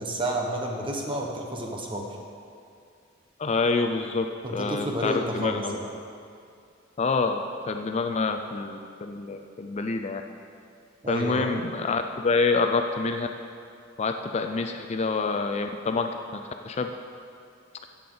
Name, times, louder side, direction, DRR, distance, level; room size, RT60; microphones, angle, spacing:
voice 1, 0.0-2.1 4.4-5.9 11.0-11.5, right 1 dB, 25° right, 0 dB, 1.2 m, -30 dB
voice 2, 3.4-4.3 4.5-5.8 7.0-10.2 11.1-13.3 14.0-16.9, left 4 dB, 35° left, 6 dB, 0.4 m, -27 dB
14.0 x 8.6 x 3.9 m, 2.4 s
head